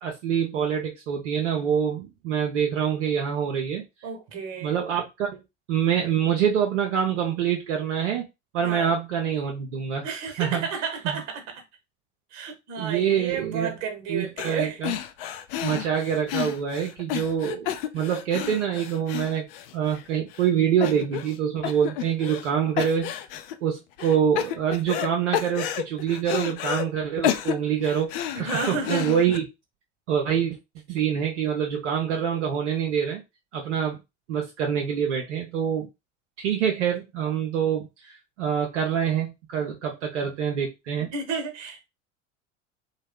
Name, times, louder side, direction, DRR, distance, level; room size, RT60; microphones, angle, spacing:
voice 1, 0.0-3.8 4.6-5.4 5.7-8.3 8.5-10.1 10.4-10.7 11.0-11.2 12.8-13.7 14.1-15.0 15.6-19.5 19.7-23.1 23.6-28.1 28.4-29.4 30.1-30.6 30.9-33.2 33.5-34.0 34.3-35.9 36.4-41.1, right 8 dB, 65° right, 0.6 m, -25 dB
voice 2, 4.0-4.8 8.6-8.9 10.0-11.6 12.3-14.8 28.3-29.1 41.0-41.8, right 5 dB, 45° right, 1.0 m, -32 dB
sound 1, 14.4-14.6 14.8-20.0 20.3-20.5 20.8-21.4 21.6-22.5 22.8-23.5 24.0-25.1 25.3-26.9 27.2-29.4, left 10 dB, 50° left, 0.5 m, -30 dB
3.1 x 2.2 x 3.3 m
figure-of-eight pair, 70°, 37 cm